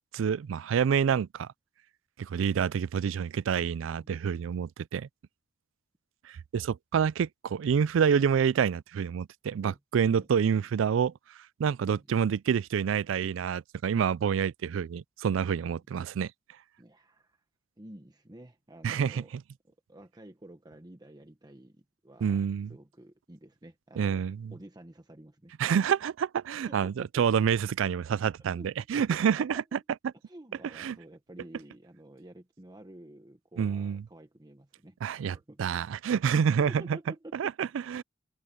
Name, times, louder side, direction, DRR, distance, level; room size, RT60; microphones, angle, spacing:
voice 1, 0.0-1.5 2.2-5.1 6.2-16.3 18.8-19.2 22.2-22.7 24.0-24.5 25.6-26.1 26.4-29.8 30.8-31.0 33.6-34.0 35.0-37.0 37.3-38.0, right 7 dB, 75° right, 0.3 m, -28 dB
voice 2, 16.8-17.4 17.8-19.3 19.7-22.4 22.7-25.5 26.7-27.1 28.5-29.8 30.2-35.0 35.3-35.6 36.6-38.0, right 1 dB, 20° right, 1.1 m, -50 dB
head